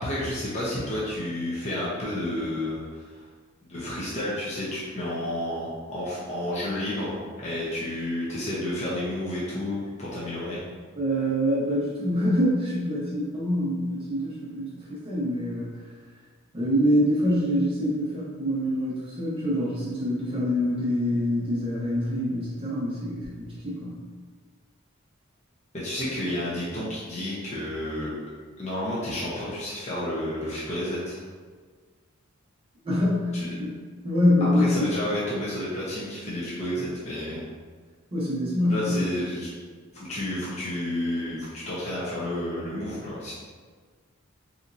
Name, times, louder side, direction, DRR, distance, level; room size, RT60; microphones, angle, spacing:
voice 1, 0.0-3.2 3.6-10.6 25.7-28.1 28.6-31.2 33.3-33.5 34.4-37.4 38.7-39.5 39.9-43.3, left 1 dB, 35° left, -7 dB, 0.7 m, -31 dB
voice 2, 11.0-15.7 16.5-24.0 32.8-33.8 34.0-34.9 38.1-39.0, equal, 25° right, -8 dB, 0.6 m, -25 dB
4.2 x 2.8 x 2.5 m, 1.5 s
head